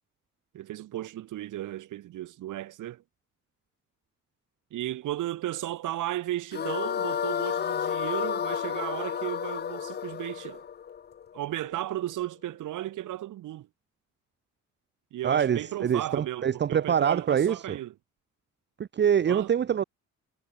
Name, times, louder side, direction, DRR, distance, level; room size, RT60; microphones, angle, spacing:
voice 1, 0.5-3.0 4.7-10.6 11.3-13.7 15.1-17.9 19.3-19.5, right 14 dB, 75° right, 2.1 m, -35 dB
sound 1, 6.5-11.7, left 8 dB, 30° left, 0.6 m, -31 dB
voice 2, 15.2-17.8 18.8-19.8, right 8 dB, 35° right, 0.7 m, -25 dB
cardioid pair, 95°, 31 cm